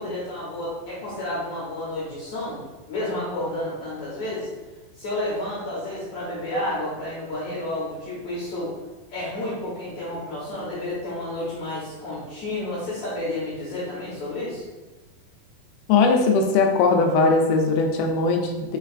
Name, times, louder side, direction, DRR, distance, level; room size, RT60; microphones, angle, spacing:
voice 1, 0.0-2.6 2.9-4.5 5.0-8.7 9.1-14.6, left 1 dB, 60° left, -8 dB, 2.2 m, -30 dB
voice 2, 15.9-18.8, left 4 dB, 90° left, 3 dB, 2.5 m, -20 dB
6.5 x 3.3 x 2.4 m, 1.2 s
omnidirectional pair, 4.3 m